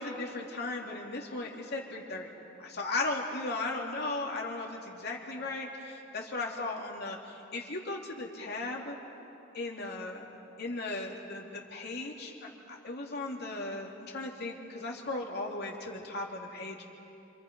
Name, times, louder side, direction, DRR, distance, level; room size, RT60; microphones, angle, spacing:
voice 1, 0.0-2.3 2.6-9.0 9.5-10.3 10.6-12.3 12.7-16.8, left 2 dB, 55° left, -1 dB, 2.9 m, -36 dB
27.0 x 26.5 x 5.4 m, 2.9 s
head